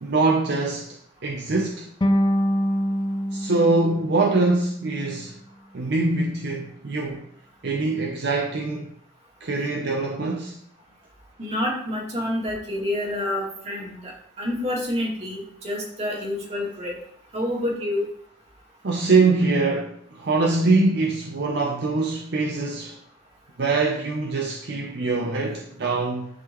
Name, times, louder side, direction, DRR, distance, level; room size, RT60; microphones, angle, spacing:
voice 1, 0.0-1.9 3.3-5.4 5.7-7.3 7.6-8.9 9.4-10.6 18.8-23.0 23.6-26.3, right 3 dB, 60° right, 0.6 m, -23 dB
sound 1, 2.0-5.1, equal, 25° left, 0.5 m, -25 dB
voice 2, 11.4-17.0 17.3-18.1, left 1 dB, 35° right, 2.3 m, -28 dB
10.5 x 3.8 x 3.1 m
head